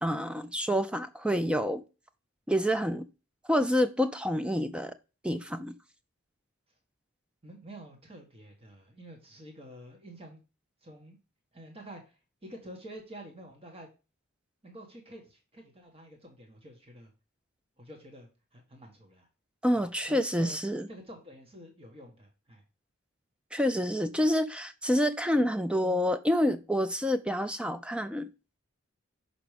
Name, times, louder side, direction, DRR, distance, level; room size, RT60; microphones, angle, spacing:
voice 1, 0.0-1.8 2.5-3.1 3.5-4.9 5.2-5.8 19.6-20.9 23.5-28.3, equal, 5° right, 0.5 m, -28 dB
voice 2, 7.4-10.4 10.8-11.2 11.5-12.1 12.4-13.9 14.6-17.1 17.8-19.3 20.1-20.6 20.9-22.6, right 1 dB, 30° right, 1.6 m, -48 dB
6.0 x 5.0 x 5.1 m
head